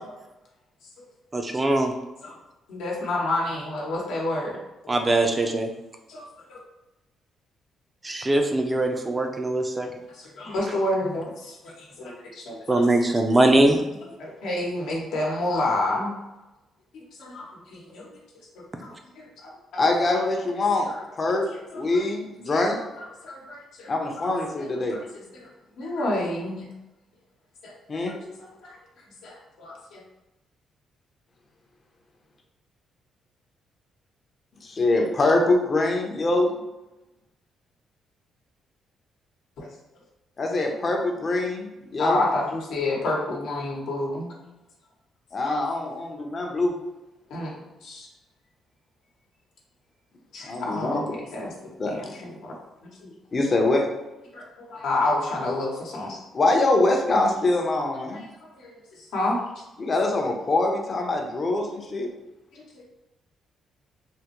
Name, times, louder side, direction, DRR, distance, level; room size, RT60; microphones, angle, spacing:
voice 1, 1.3-1.9 4.9-5.7 8.0-9.9 12.7-13.8, right 2 dB, 20° right, 4 dB, 0.4 m, -21 dB
voice 2, 2.7-4.6 4.8-5.0 6.1-6.6 10.1-12.8 14.2-16.1 16.9-18.1 18.5-19.5 20.8-21.0 21.5-21.8 22.5-22.6 23.0-24.3 24.6-25.5 25.8-26.7 27.6-27.7 28.1-28.3 28.6-28.8 29.2-30.0 39.6-39.7 42.0-44.3 45.4-45.6 47.3-47.5 47.8-48.1 50.3-51.0 51.3-51.5 51.9-52.5 53.0-53.1 54.3-56.2 58.1-58.3 58.6-59.4 62.5-62.8, left 2 dB, 85° left, -3 dB, 0.9 m, -30 dB
voice 3, 19.8-20.9 21.2-21.5 21.7-22.8 23.9-25.0 27.9-28.1 34.6-36.6 40.4-42.2 45.3-46.7 50.4-51.0 51.8-51.9 53.3-53.8 56.3-58.2 59.8-62.1, left 2 dB, 40° left, 1 dB, 0.6 m, -24 dB
3.5 x 2.1 x 2.9 m, 0.99 s
cardioid pair, 90°, 0 cm